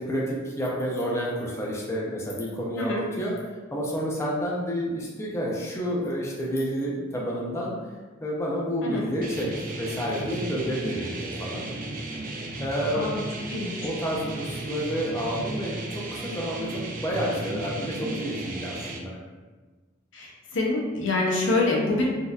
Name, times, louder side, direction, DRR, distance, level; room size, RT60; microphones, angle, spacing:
voice 1, 0.0-3.4 3.7-7.7 8.2-11.7 12.6-13.1 13.8-19.2, equal, 15° left, -4 dB, 0.4 m, -29 dB
sound 1, 9.2-19.0, right 2 dB, 45° right, 0.4 m, -35 dB
voice 2, 20.1-22.1, left 2 dB, 70° left, -2 dB, 0.7 m, -26 dB
3.9 x 2.6 x 2.3 m, 1.3 s
head